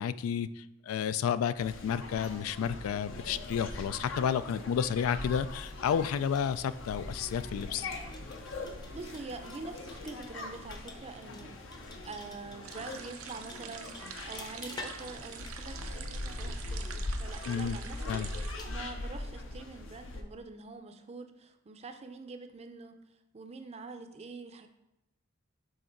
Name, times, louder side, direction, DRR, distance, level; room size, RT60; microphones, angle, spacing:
voice 1, 0.0-7.9 17.5-17.8 18.1-18.3, left 8 dB, 85° left, 15 dB, 0.3 m, -31 dB
sound 1, 1.6-20.2, left 2 dB, 65° left, 0.7 m, -41 dB
sound 2, 5.9-18.9, left 2 dB, 20° left, 0.6 m, -52 dB
voice 2, 8.9-11.6 12.0-18.2 18.7-23.0 23.3-24.7, right 3 dB, 30° right, 7 dB, 0.5 m, -45 dB
sound 3, 12.6-18.5, right 7 dB, 90° right, 0.6 m, -46 dB
6.4 x 3.8 x 4.5 m, 0.89 s
head